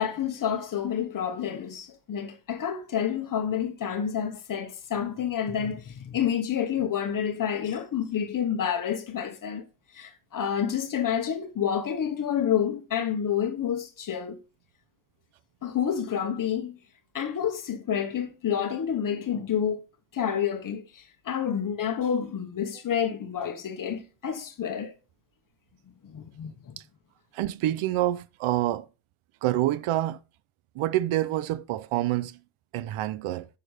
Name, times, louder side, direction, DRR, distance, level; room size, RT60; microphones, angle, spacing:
voice 1, 0.0-9.7 9.9-14.4 15.6-16.7 17.1-19.8 20.1-24.9 26.0-26.7, left 8 dB, 40° left, 1.3 m, -29 dB
voice 2, 27.3-28.9 29.4-30.2 30.7-32.4 32.7-33.5, right 14 dB, 90° right, 0.8 m, -27 dB
11.0 x 7.1 x 5.0 m
cardioid pair, 180°, 48 cm